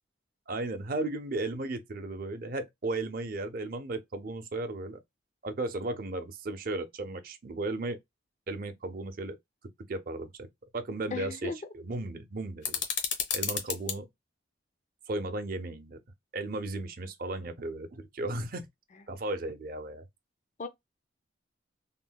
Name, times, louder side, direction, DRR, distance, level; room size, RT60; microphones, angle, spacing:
voice 1, 0.5-5.0 5.4-8.0 8.5-9.4 9.9-10.5 10.7-12.7 13.3-14.1 15.1-16.0 16.3-18.7 19.1-20.0, right 2 dB, 50° right, 0.6 m, -35 dB
voice 2, 11.1-11.6 20.6-20.7, left 5 dB, 40° left, 0.4 m, -35 dB
sound 1, 12.6-14.0, left 7 dB, 75° left, 0.8 m, -32 dB
3.6 x 2.1 x 2.2 m
head